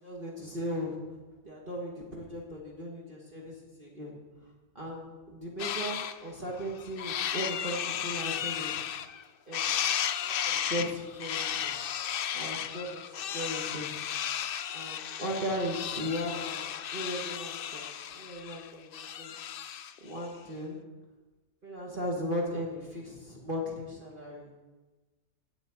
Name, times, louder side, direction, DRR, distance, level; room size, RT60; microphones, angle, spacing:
voice 1, 0.0-1.0 1.4-3.5 3.8-4.1 4.8-8.8 9.5-9.8 10.2-11.7 12.3-13.9 14.7-19.3 20.0-20.8 21.6-24.5, equal, 35° right, -2 dB, 1.9 m, -37 dB
sound 1, 5.6-6.2 6.6-9.2 9.5-20.0, left 9 dB, 80° left, 0.5 m, -34 dB
8.5 x 8.1 x 8.7 m, 1.2 s
omnidirectional pair, 1.6 m